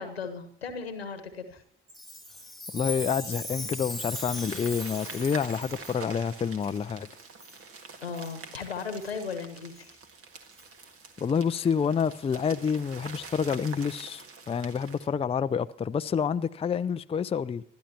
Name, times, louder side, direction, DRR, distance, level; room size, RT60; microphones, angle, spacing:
voice 1, 0.0-1.6 8.0-10.0, left 5 dB, 85° left, 1.4 m, -36 dB
Chime, 1.9-6.0 6.6-6.7 7.4-7.6 8.2-8.3 9.0-9.1 9.8-9.9 10.6-10.7, left 1 dB, ahead, 2.0 m, -39 dB
voice 2, 2.7-7.1 11.2-17.6, left 6 dB, 20° left, 0.5 m, -28 dB
sound 1, 3.6-15.1, right 4 dB, 50° right, 1.8 m, -46 dB
26.0 x 12.5 x 2.9 m
figure-of-eight pair, 50°, 30 cm